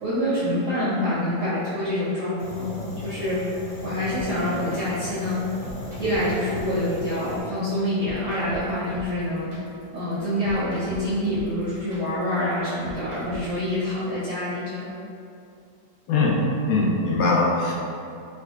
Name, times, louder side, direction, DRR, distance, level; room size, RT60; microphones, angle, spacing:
voice 1, 0.0-3.4 3.8-5.4 6.0-9.5 9.9-14.9, left 1 dB, 70° right, -9 dB, 0.7 m, -26 dB
Fire, 2.4-7.4, left 2 dB, 70° left, 0.9 m, -37 dB
sound 1, 4.1-13.7, right 1 dB, 90° right, 1.5 m, -41 dB
voice 2, 16.7-17.7, left 3 dB, 85° left, -4 dB, 1.3 m, -21 dB
3.9 x 2.2 x 2.3 m, 2.5 s
omnidirectional pair, 1.9 m